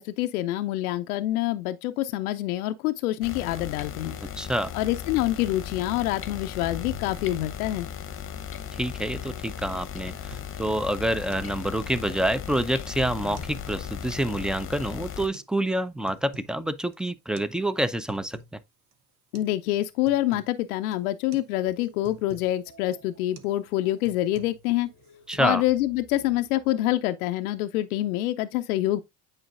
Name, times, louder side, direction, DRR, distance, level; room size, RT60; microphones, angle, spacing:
voice 1, 0.0-4.2 4.7-7.9 19.3-24.9 25.4-29.0, left 15 dB, 80° left, 0.6 m, -26 dB
sound 1, 3.2-15.3, left 8 dB, 30° left, 0.9 m, -37 dB
voice 2, 4.4-4.7 8.7-18.6 25.3-25.6, right 1 dB, ahead, 0.5 m, -27 dB
sound 2, 9.4-9.5 9.8-10.6 10.9-11.0 11.3-11.5 11.9-12.6 13.2-13.6 13.9-14.5 15.3-15.5 15.9-16.6 16.9-17.0 17.4-17.5 17.8-18.6 18.9-19.0 19.3-19.6 19.8-20.5 20.9-21.1 21.3-21.5 21.8-22.5 22.9-23.1 23.3-23.6 23.9-24.7 25.0-25.4, right 4 dB, 75° right, 1.0 m, -48 dB
sound 3, 21.6-27.0, left 3 dB, 55° right, 2.6 m, -54 dB
8.8 x 4.5 x 2.5 m
hypercardioid pair, 70°, 44 cm